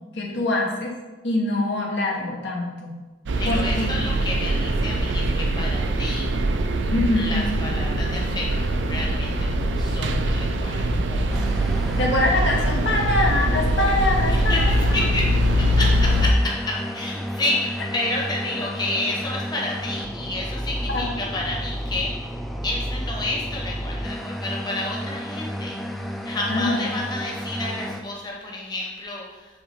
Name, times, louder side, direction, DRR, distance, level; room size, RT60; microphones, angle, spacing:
voice 1, 0.1-0.9 1.2-2.9 3.4-4.2 6.9-7.5 12.0-15.0 20.9-21.1 26.5-26.8, left 2 dB, 80° left, -1 dB, 1.2 m, -24 dB
sound 1, 3.3-16.3, right 1 dB, 85° right, 0.5 m, -23 dB
voice 2, 3.4-6.3 7.2-11.2 14.3-22.3 22.6-25.7 26.0-29.6, left 2 dB, 25° left, -2 dB, 1.0 m, -30 dB
sound 2, 11.3-28.0, equal, ahead, 0.3 m, -31 dB
7.1 x 3.7 x 3.6 m, 1.2 s
head